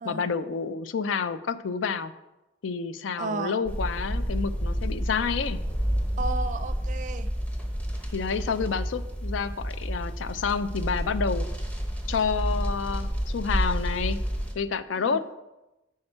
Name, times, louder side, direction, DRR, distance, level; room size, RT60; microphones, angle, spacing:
voice 1, 0.0-2.1 2.6-5.6 8.1-11.5 12.1-14.2 14.5-15.3, left 5 dB, 85° left, 14 dB, 0.4 m, -29 dB
voice 2, 3.2-3.6 6.2-7.3 14.9-15.2, right 3 dB, 40° right, 11 dB, 0.4 m, -33 dB
sound 1, 3.6-14.5, equal, 10° left, 0.8 m, -30 dB
8.7 x 4.8 x 4.4 m, 1.0 s
head